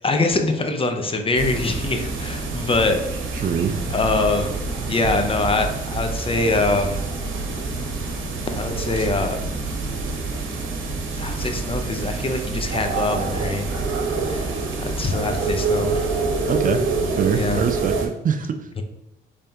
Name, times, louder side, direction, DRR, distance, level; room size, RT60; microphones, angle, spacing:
voice 1, 0.0-3.0 3.9-4.5 4.9-7.0 8.6-9.4 11.2-13.7 14.3-14.5 14.8-16.1 17.3-17.6 18.8-18.9, left 2 dB, 30° left, 5 dB, 0.7 m, -23 dB
sound 1, 1.3-18.1, right 3 dB, 80° right, 1.0 m, -26 dB
voice 2, 3.3-3.8 16.5-16.9 17.2-18.7, right 7 dB, 45° right, 9 dB, 0.4 m, -24 dB
5.5 x 3.3 x 2.8 m, 0.99 s
cardioid pair, 90°, 20 cm